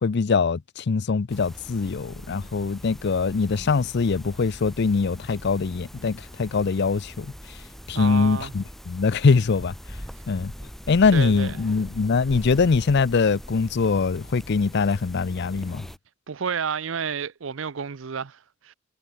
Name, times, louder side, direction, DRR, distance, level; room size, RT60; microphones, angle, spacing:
voice 1, 0.0-7.3 7.9-9.7 10.3-10.5 10.9-15.8, left 4 dB, 60° left, 0.5 m, -23 dB
sound 1, 1.3-16.0, equal, ahead, 1.1 m, -42 dB
voice 2, 7.9-8.5 11.1-11.6 16.3-18.7, right 6 dB, 75° right, 0.6 m, -31 dB
head